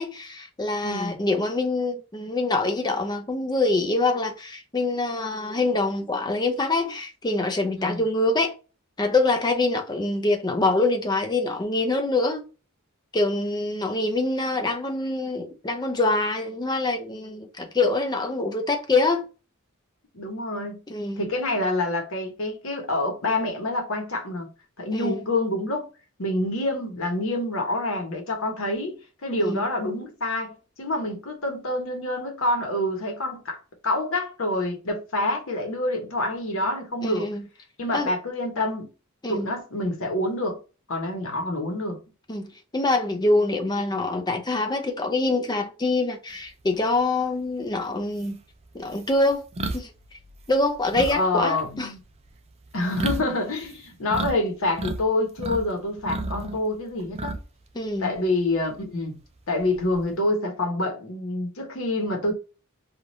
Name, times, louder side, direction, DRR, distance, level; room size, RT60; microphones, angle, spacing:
voice 1, 0.0-8.5 9.0-12.4 13.1-19.3 20.9-21.3 24.9-25.2 29.4-29.6 37.0-37.4 37.9-38.1 39.2-39.5 42.3-48.4 48.7-49.4 49.7-49.9 50.5-51.9 57.7-58.1, left 2 dB, 20° left, 0.5 m, -25 dB
voice 2, 0.8-1.2 7.7-8.0 20.1-20.8 21.2-24.5 24.8-25.9 26.2-37.3 37.8-38.9 39.3-40.6 40.9-42.0 51.1-52.0 52.7-57.4 58.0-59.2 59.5-62.3, left 2 dB, 65° left, 1.0 m, -27 dB
sound 1, 47.6-47.7 48.2-54.4 54.6-55.6 56.0-57.6 58.0-58.2 59.6-60.1, right 2 dB, 30° right, 0.4 m, -32 dB
3.3 x 2.4 x 2.6 m
head